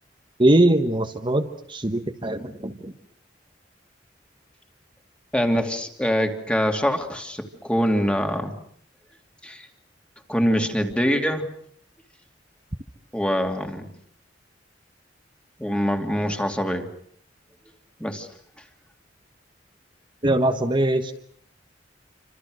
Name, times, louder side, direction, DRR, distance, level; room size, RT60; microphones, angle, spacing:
voice 1, 0.4-2.9 20.2-21.1, right 1 dB, 25° right, 4 dB, 1.3 m, -21 dB
voice 2, 5.3-8.5 9.4-9.7 10.3-11.5 13.1-13.9 15.6-16.9 18.0-18.3, equal, 5° left, 5 dB, 2.7 m, -24 dB
29.0 x 26.5 x 6.5 m, 0.62 s
head